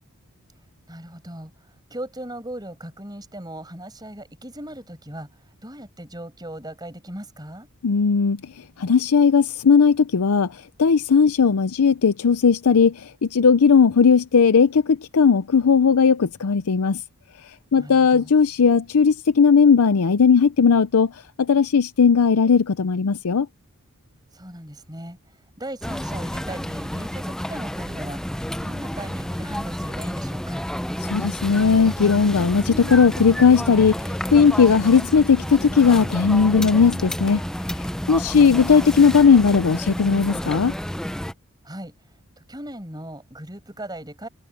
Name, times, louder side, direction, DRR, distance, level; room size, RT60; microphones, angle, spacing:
voice 1, 0.9-1.5 1.9-5.3 5.6-7.7 17.8-18.3 24.3-25.2 25.6-28.2 28.6-30.6 38.1-38.6 41.6-41.9 42.4-44.3, right 1 dB, 20° right, 7.0 m, -37 dB
voice 2, 7.8-8.4 8.8-10.5 10.8-17.0 17.7-21.1 21.4-23.5 31.1-33.9 34.3-37.4 38.1-40.7, left 5 dB, 85° left, 0.5 m, -17 dB
sound 1, 25.8-41.3, equal, 5° left, 0.5 m, -30 dB
head